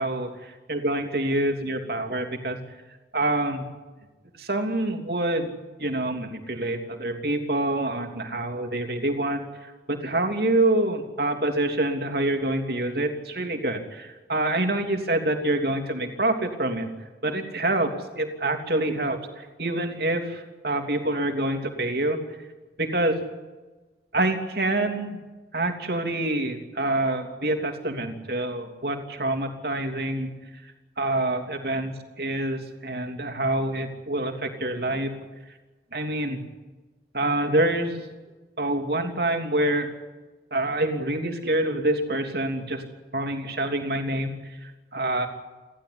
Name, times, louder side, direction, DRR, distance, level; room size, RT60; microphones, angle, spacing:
voice 1, 0.0-0.3 0.7-2.6 3.1-3.7 4.4-5.5 5.8-16.9 17.2-22.2 22.8-23.2 24.1-25.2 25.5-30.3 31.0-35.1 35.9-36.4 37.1-38.1 38.6-39.9 40.5-42.8 43.1-45.3, right 1 dB, 60° right, 5 dB, 3.1 m, -26 dB
29.5 x 13.0 x 9.7 m, 1.2 s
head